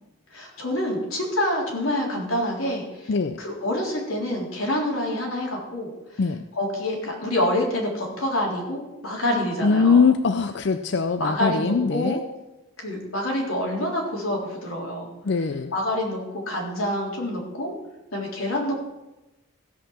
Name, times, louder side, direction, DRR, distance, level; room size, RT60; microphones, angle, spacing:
voice 1, 0.3-3.1 3.4-5.9 6.5-10.0 11.2-12.2 12.8-15.1 15.7-17.7 18.1-18.8, left 1 dB, 90° left, -2 dB, 3.9 m, -27 dB
voice 2, 9.6-12.2 15.2-15.7, left 5 dB, 55° left, 9 dB, 0.5 m, -21 dB
16.0 x 5.7 x 7.3 m, 0.99 s
head